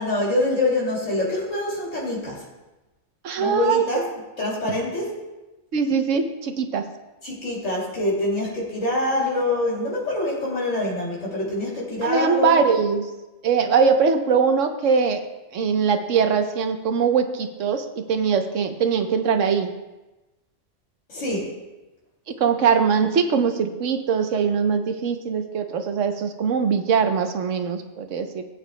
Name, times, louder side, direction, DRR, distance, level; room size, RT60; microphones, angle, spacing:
voice 1, 0.0-2.4 3.4-4.0 4.4-5.1 7.2-12.6 21.1-21.5, left 2 dB, 85° left, -6 dB, 3.0 m, -25 dB
voice 2, 3.2-3.8 5.7-6.9 12.0-13.0 13.4-15.2 15.5-19.7 22.3-28.4, right 6 dB, 80° right, 7 dB, 1.2 m, -21 dB
18.0 x 9.0 x 2.2 m, 1.1 s
omnidirectional pair, 1.3 m